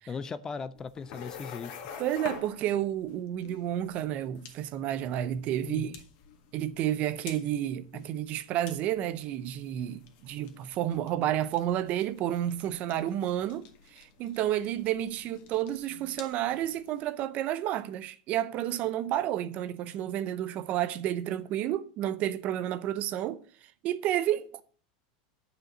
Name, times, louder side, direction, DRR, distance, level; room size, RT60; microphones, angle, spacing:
voice 1, 0.1-1.7 5.6-6.0, left 5 dB, 15° left, 0.4 m, -38 dB
sound 1, 0.7-17.0, left 7 dB, 50° left, 1.7 m, -49 dB
voice 2, 2.0-6.0 6.5-23.4 23.8-24.6, right 12 dB, 40° right, 0.6 m, -31 dB
8.8 x 5.1 x 7.7 m
supercardioid pair, 150°, 4 cm